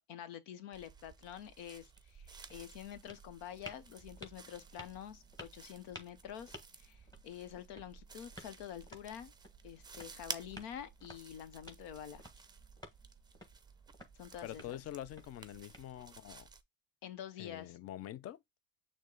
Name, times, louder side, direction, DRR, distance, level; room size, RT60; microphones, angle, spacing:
voice 1, 0.0-9.3 9.6-12.2 14.1-14.8 17.0-17.8, left 10 dB, 80° left, 0.9 m, -48 dB
sound 1, 0.7-16.6, right 4 dB, 10° right, 0.5 m, -53 dB
sound 2, 1.9-16.3, equal, 10° left, 1.4 m, -57 dB
voice 2, 14.4-16.5 17.4-18.4, left 12 dB, 40° left, 0.4 m, -45 dB
6.3 x 2.2 x 3.8 m
cardioid pair, 105°, 41 cm